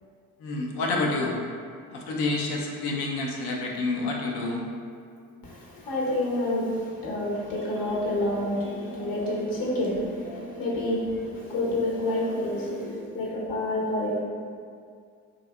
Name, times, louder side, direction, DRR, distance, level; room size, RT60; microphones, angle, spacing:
voice 1, 0.4-1.3 1.9-4.6, left 3 dB, 70° left, 0 dB, 0.6 m, -28 dB
voice 2, 5.4-14.2, left 1 dB, 55° left, -5 dB, 0.9 m, -28 dB
2.7 x 2.6 x 2.3 m, 2.2 s
hypercardioid pair, 55°, 41 cm